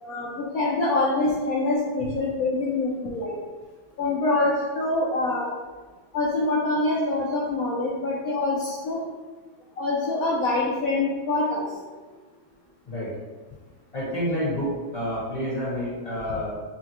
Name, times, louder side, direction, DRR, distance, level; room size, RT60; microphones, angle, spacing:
voice 1, 0.0-3.4 4.0-5.5 6.1-9.0 9.8-11.7, left 2 dB, 70° left, -4 dB, 0.8 m, -25 dB
voice 2, 13.9-16.5, equal, 20° left, -9 dB, 1.4 m, -29 dB
5.5 x 2.4 x 2.9 m, 1.4 s
omnidirectional pair, 2.1 m